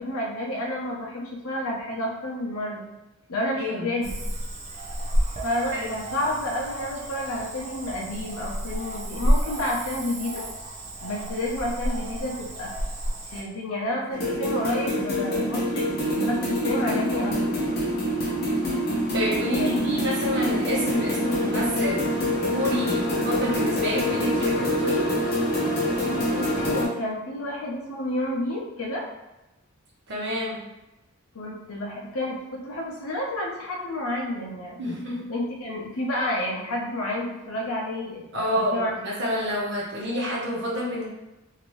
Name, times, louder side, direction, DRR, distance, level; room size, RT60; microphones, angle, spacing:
voice 1, 0.0-2.9 3.3-4.2 5.4-10.4 11.0-12.7 13.3-15.9 16.1-17.5 19.6-19.9 26.3-29.0 31.3-34.8 35.3-38.9, left 1 dB, 75° left, -2 dB, 0.7 m, -30 dB
voice 2, 3.6-3.9 5.7-5.9 19.1-25.1 30.1-30.6 34.8-35.2 38.3-41.0, left 1 dB, 50° right, -5 dB, 0.9 m, -28 dB
Cricket / Frog, 4.0-13.4, equal, 30° right, 0.4 m, -30 dB
sound 1, 14.1-26.8, equal, 45° left, 0.8 m, -25 dB
2.9 x 2.6 x 3.1 m, 0.99 s
head